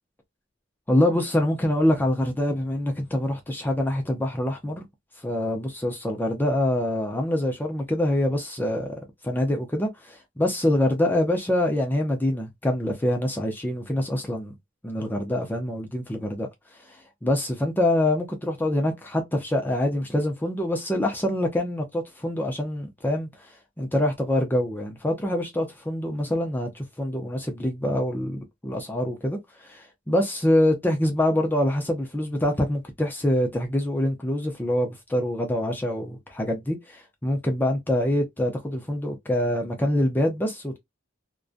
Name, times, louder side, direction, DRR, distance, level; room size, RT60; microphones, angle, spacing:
voice 1, 0.9-4.9 5.2-8.9 9.2-14.6 14.8-16.5 16.7-40.8, left 1 dB, 10° left, 0.5 m, -25 dB
2.5 x 2.2 x 2.4 m
head